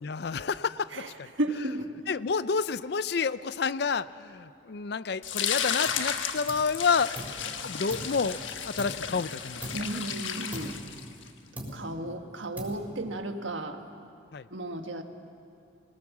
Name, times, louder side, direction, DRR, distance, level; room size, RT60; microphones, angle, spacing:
voice 1, 0.0-1.3 2.1-7.1 7.6-8.4 8.7-9.6 14.3-14.5, left 5 dB, 55° left, 16 dB, 0.5 m, -29 dB
voice 2, 0.9-1.9 9.7-10.8 11.7-13.8 14.5-15.0, right 1 dB, 80° right, 6 dB, 1.6 m, -34 dB
sound 1, 5.2-11.3, left 8 dB, 85° left, 1.3 m, -33 dB
sound 2, 5.9-6.1 6.5-7.5 7.9-9.2 9.6-10.0 10.5-11.3 11.6-12.1 12.6-13.1, equal, 10° right, 3.6 m, -41 dB
23.5 x 19.0 x 7.3 m, 2.6 s
head